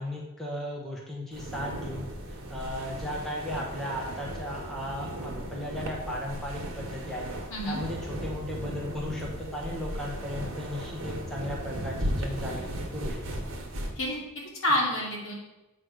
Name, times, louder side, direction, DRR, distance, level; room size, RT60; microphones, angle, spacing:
voice 1, 0.0-7.3 7.7-13.4, left 1 dB, ahead, -3 dB, 0.9 m, -36 dB
sound 1, 1.3-13.9, right 1 dB, 60° right, 1.4 m, -36 dB
voice 2, 7.5-7.8 14.0-15.3, left 1 dB, 60° left, -3 dB, 2.2 m, -29 dB
7.9 x 3.2 x 6.1 m, 1.0 s
head